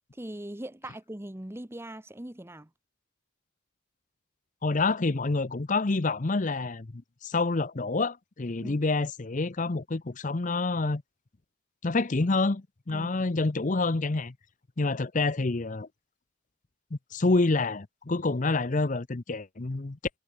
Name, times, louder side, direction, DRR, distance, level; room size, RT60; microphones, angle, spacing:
voice 1, 0.1-2.7 8.6-8.8 12.9-13.1, right 1 dB, 10° right, 0.9 m, -40 dB
voice 2, 4.6-11.0 11.8-14.3 14.8-15.9 16.9-20.0, left 3 dB, 40° left, 0.7 m, -27 dB
head